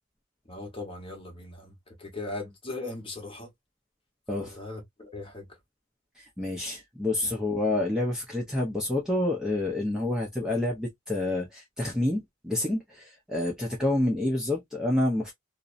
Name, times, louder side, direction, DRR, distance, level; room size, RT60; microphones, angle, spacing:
voice 1, 0.5-3.5 4.3-5.5 7.2-7.3, left 2 dB, 25° left, 0.9 m, -39 dB
voice 2, 4.3-4.6 6.2-15.3, left 1 dB, 5° right, 0.5 m, -28 dB
2.6 x 2.0 x 2.4 m
head